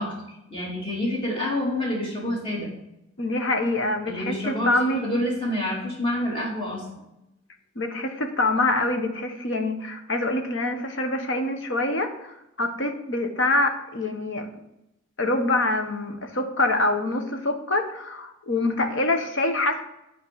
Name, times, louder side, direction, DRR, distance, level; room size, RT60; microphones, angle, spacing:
voice 1, 0.0-2.7 4.1-6.9, left 1 dB, 25° left, -3 dB, 2.6 m, -28 dB
voice 2, 3.2-5.0 7.7-14.5 15.2-19.8, left 2 dB, 60° left, 5 dB, 1.2 m, -25 dB
10.5 x 4.6 x 7.5 m, 0.88 s
head